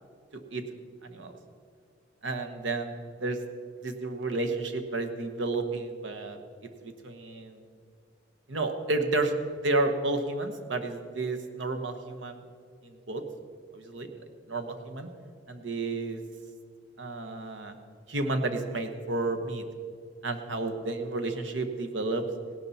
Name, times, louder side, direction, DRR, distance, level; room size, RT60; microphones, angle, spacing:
voice 1, 0.3-0.6 1.0-1.3 2.2-2.9 3.2-3.4 3.8-7.6 8.5-9.3 9.6-12.4 12.8-13.2 13.7-14.1 14.5-15.1 15.5-16.2 17.0-17.7 18.1-19.6 20.2-22.3, right 2 dB, 80° right, 6 dB, 1.1 m, -31 dB
17.5 x 11.5 x 4.1 m, 2.2 s
head